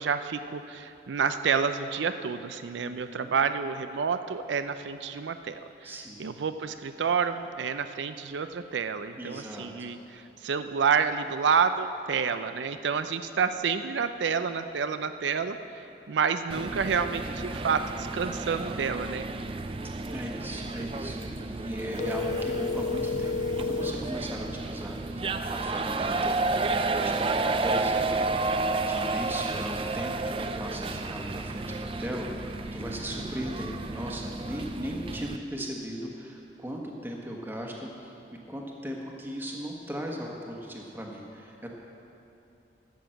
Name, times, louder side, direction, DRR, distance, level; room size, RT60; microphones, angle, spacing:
voice 1, 0.0-5.9 6.2-15.6 16.1-19.3, right 6 dB, 90° right, 10 dB, 0.5 m, -29 dB
voice 2, 2.8-3.3 5.8-6.2 9.2-9.9 20.1-41.7, equal, 10° right, 0 dB, 1.2 m, -38 dB
sound 1, 16.5-35.4, right 3 dB, 30° right, 0.4 m, -31 dB
sound 2, 21.9-24.0, left 4 dB, 40° left, 0.4 m, -30 dB
12.5 x 7.2 x 7.6 m, 2.8 s
head